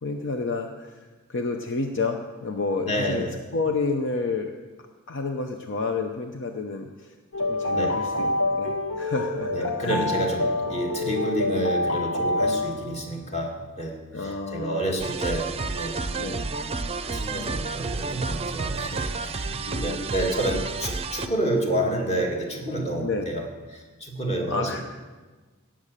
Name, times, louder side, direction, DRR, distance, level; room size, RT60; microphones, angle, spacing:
voice 1, 0.0-4.5 5.1-10.1 14.1-14.9 16.2-16.4 19.7-20.1 23.0-23.3 24.5-24.8, left 3 dB, 60° left, 5 dB, 0.8 m, -30 dB
voice 2, 2.8-3.4 7.7-8.2 9.5-16.1 17.1-23.5 23.7-24.8, right 1 dB, 30° left, 1 dB, 2.1 m, -29 dB
sound 1, 7.3-13.1, left 2 dB, 75° left, 1.7 m, -27 dB
sound 2, 15.0-21.3, right 3 dB, 25° right, 0.6 m, -30 dB
17.5 x 7.4 x 6.7 m, 1.3 s
head